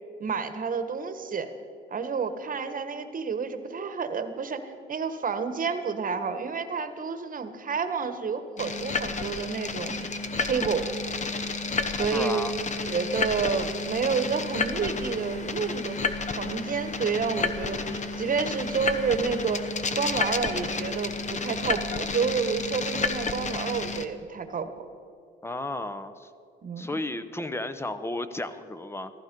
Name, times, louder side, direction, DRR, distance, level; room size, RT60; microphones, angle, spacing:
voice 1, 0.2-1.5 1.9-10.1 10.4-10.9 11.9-12.5 12.8-16.0 16.4-19.7 19.9-24.9 26.6-27.0, right 5 dB, 45° right, 9 dB, 1.2 m, -30 dB
sound 1, 8.6-24.1, left 3 dB, 35° left, 1.0 m, -31 dB
voice 2, 12.1-12.5 25.4-26.3 26.8-29.1, left 2 dB, 10° left, 12 dB, 0.9 m, -33 dB
14.5 x 14.5 x 5.3 m, 2.5 s
cardioid pair, 90°, 20 cm